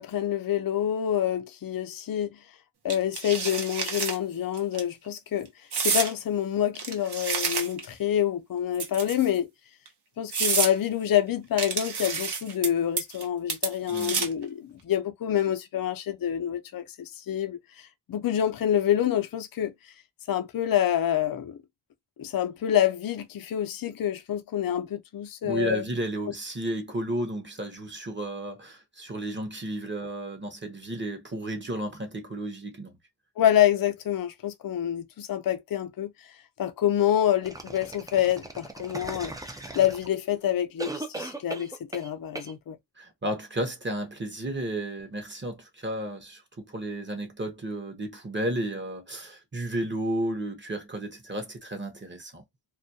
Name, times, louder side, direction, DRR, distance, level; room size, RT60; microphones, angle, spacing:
voice 1, 0.0-2.4 2.8-5.5 5.8-9.5 10.2-19.9 20.3-21.6 22.2-25.8 33.4-36.3 36.6-39.3 39.7-42.8, left 10 dB, 50° left, 0.5 m, -27 dB
sound 1, 2.9-4.2 4.6-4.8 5.7-6.1 6.7-7.9 8.7-9.4 9.9-10.0 10.3-10.7 11.6-12.7 13.0-13.2 13.5-14.4, right 5 dB, 55° right, 0.8 m, -29 dB
voice 2, 13.9-14.3 25.4-33.0 43.0-52.4, right 1 dB, 25° right, 0.7 m, -33 dB
sound 2, 37.4-40.3 40.8-42.1 42.3-42.5, right 2 dB, 10° right, 0.3 m, -38 dB
2.3 x 2.1 x 2.6 m
wide cardioid pair, 80°, 46 cm